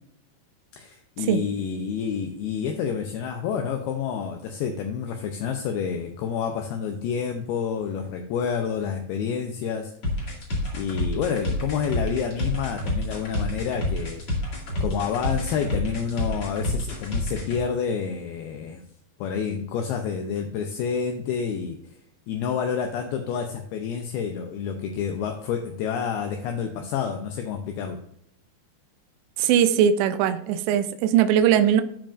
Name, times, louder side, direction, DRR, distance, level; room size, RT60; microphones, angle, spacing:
voice 1, 0.8-10.2 10.7-14.3 14.8-18.8 19.2-22.0 22.3-28.0, left 7 dB, 80° left, 4 dB, 2.3 m, -29 dB
sound 1, 10.0-17.6, left 1 dB, 40° left, 2.6 m, -28 dB
voice 2, 29.4-31.8, right 9 dB, 80° right, 9 dB, 2.8 m, -20 dB
14.5 x 5.1 x 2.5 m, 0.73 s
omnidirectional pair, 5.1 m